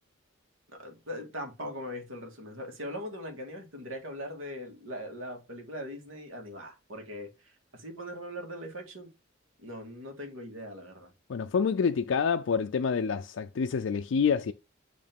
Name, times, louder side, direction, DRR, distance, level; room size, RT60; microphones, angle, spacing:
voice 1, 0.7-9.1 9.6-11.1, equal, 80° right, 2.0 m, -40 dB
voice 2, 11.3-14.5, left 6 dB, 65° left, 0.4 m, -27 dB
8.6 x 3.2 x 3.5 m
head